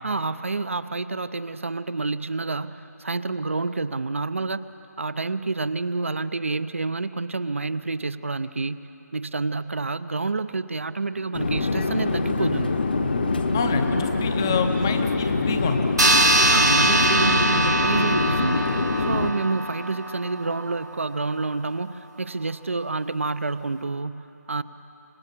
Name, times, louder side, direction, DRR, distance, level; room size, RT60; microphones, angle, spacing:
voice 1, 0.0-4.7 5.0-12.8 16.5-24.6, right 3 dB, 45° right, 13 dB, 0.6 m, -28 dB
Conversation / Chatter / Fixed-wing aircraft airplane, 11.3-19.3, left 3 dB, 30° left, 1.1 m, -24 dB
voice 2, 13.5-15.9, left 5 dB, 15° left, 7 dB, 0.7 m, -27 dB
sound 1, 16.0-20.9, right 2 dB, 75° right, 1.8 m, -22 dB
26.5 x 17.5 x 7.3 m, 2.9 s
figure-of-eight pair, 165°, 9 cm